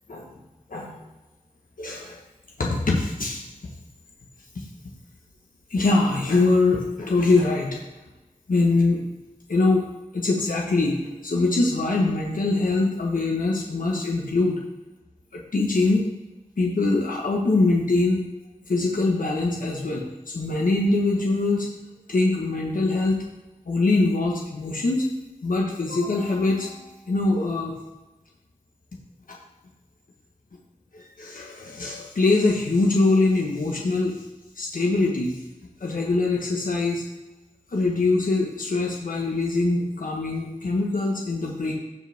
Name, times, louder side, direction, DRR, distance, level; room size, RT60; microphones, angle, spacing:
voice 1, 0.1-0.4 0.7-1.0 1.8-2.2 2.6-3.5 4.5-4.6 5.7-7.8 8.5-9.0 9.5-9.8 10.1-14.6 15.3-16.1 16.6-18.3 18.7-21.7 22.1-23.2 23.6-25.0 25.4-27.7 30.9-34.1 34.6-35.4 35.8-37.0 37.7-41.7, left 3 dB, 85° left, -1 dB, 1.3 m, -23 dB
15.0 x 5.1 x 3.6 m, 1.1 s
wide cardioid pair, 60°, 14 cm